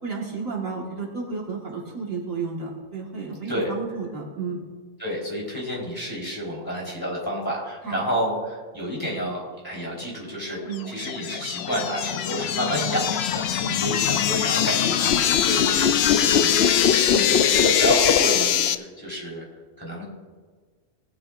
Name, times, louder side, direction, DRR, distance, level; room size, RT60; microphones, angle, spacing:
voice 1, 0.0-4.6 7.8-8.0 10.7-10.9 13.6-13.8 17.1-17.3, right 5 dB, 60° right, -2 dB, 2.0 m, -32 dB
voice 2, 5.0-10.6 10.9-19.5 19.8-20.0, equal, 15° left, -5 dB, 3.9 m, -30 dB
sound 1, 10.8-18.8, left 9 dB, 70° left, 0.6 m, -21 dB
19.5 x 9.9 x 2.5 m, 1.5 s
omnidirectional pair, 1.6 m